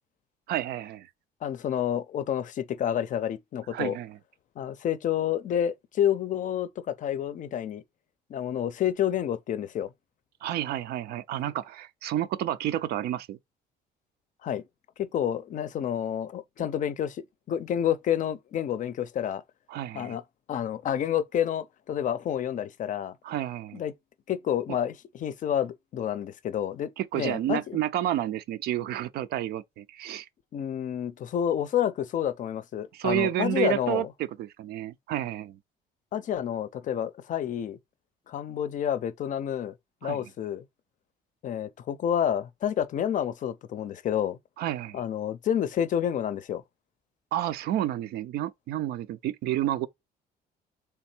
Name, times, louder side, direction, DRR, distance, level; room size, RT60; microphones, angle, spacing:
voice 1, 0.5-1.1 3.7-4.2 10.4-13.4 19.7-20.2 23.2-23.8 27.0-30.3 32.9-34.1 34.4-35.6 40.0-40.2 44.6-45.0 47.3-49.9, right 12 dB, 70° right, 0.5 m, -30 dB
voice 2, 1.4-4.0 4.6-7.8 8.3-9.9 14.4-14.6 15.0-19.4 19.9-20.2 20.5-23.2 23.7-23.9 24.3-27.8 30.5-34.1 36.1-37.8 38.3-39.7 40.0-40.6 41.4-44.4 44.9-46.6, left 9 dB, 50° left, 0.5 m, -29 dB
3.5 x 3.2 x 4.4 m
cardioid pair, 110°, 17 cm